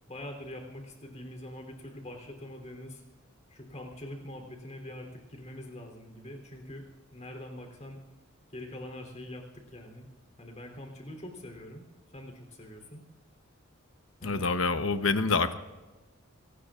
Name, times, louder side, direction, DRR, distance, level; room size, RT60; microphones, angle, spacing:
voice 1, 0.1-3.0 3.5-6.8 7.1-8.0 8.5-10.1 10.4-11.9 12.1-13.0 14.2-14.4, left 1 dB, 35° left, 2 dB, 3.4 m, -44 dB
voice 2, 14.2-15.5, left 4 dB, 75° left, 10 dB, 1.0 m, -26 dB
24.0 x 18.5 x 2.5 m, 1.2 s
head